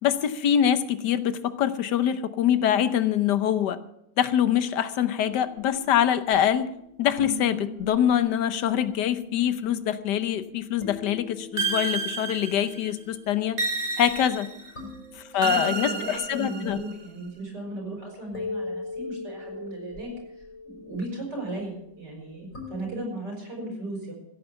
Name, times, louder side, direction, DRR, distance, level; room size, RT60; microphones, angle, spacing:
voice 1, 0.0-3.8 4.2-6.7 7.0-13.6 14.0-14.5 15.3-16.8, left 10 dB, 80° left, 12 dB, 1.5 m, -24 dB
sound 1, 5.2-23.0, left 2 dB, 50° left, 4.8 m, -42 dB
sound 2, 11.6-12.9 13.6-14.7 15.4-16.9, right 4 dB, 45° right, 1.4 m, -30 dB
voice 2, 15.3-20.1 20.6-24.1, right 1 dB, 85° right, 0 dB, 6.5 m, -36 dB
15.5 x 9.0 x 7.1 m, 0.81 s
omnidirectional pair, 1.8 m